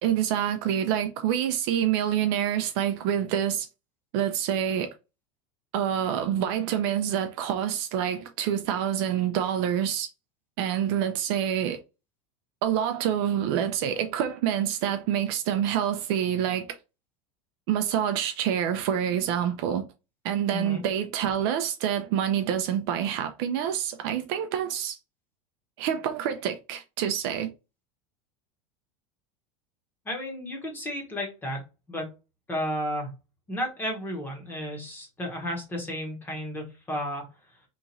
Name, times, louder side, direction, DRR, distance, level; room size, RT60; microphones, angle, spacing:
voice 1, 0.0-3.7 4.1-4.9 5.7-10.1 10.6-11.8 12.6-16.8 17.7-19.9 20.2-25.0 25.8-27.5, right 9 dB, 50° right, 0.4 m, -27 dB
voice 2, 20.5-20.8 30.0-31.6 31.9-32.1 32.5-33.1 33.5-37.3, left 1 dB, 10° left, 0.9 m, -33 dB
3.0 x 2.4 x 3.8 m
supercardioid pair, 170°, 17 cm